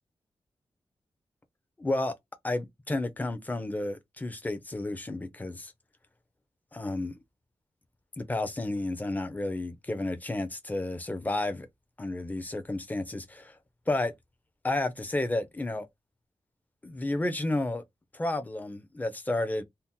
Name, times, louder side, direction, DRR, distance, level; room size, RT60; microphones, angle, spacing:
voice 1, 1.8-2.1 2.4-5.7 6.7-7.1 8.2-11.7 12.0-13.6 13.9-14.1 14.6-15.9 16.8-17.8 18.1-19.6, left 2 dB, 15° left, 0.6 m, -31 dB
2.8 x 2.1 x 3.6 m
wide cardioid pair, 120°, 11 cm